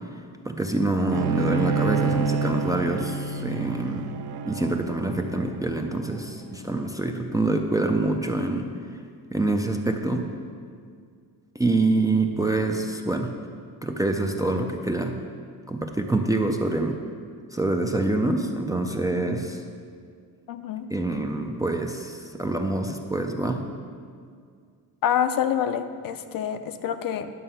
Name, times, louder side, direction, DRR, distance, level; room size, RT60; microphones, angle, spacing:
voice 1, 0.4-4.1 4.4-8.7 9.3-10.2 11.6-13.3 13.8-15.1 15.7-17.0 17.5-19.6 20.9-23.6, right 2 dB, 10° right, 3 dB, 0.4 m, -26 dB
Bowed string instrument, 1.1-6.4, right 5 dB, 80° right, 0.6 m, -28 dB
voice 2, 20.5-20.9 25.0-27.3, left 9 dB, 65° left, 9 dB, 0.6 m, -26 dB
11.0 x 6.7 x 5.6 m, 2.1 s
cardioid pair, 165°, 38 cm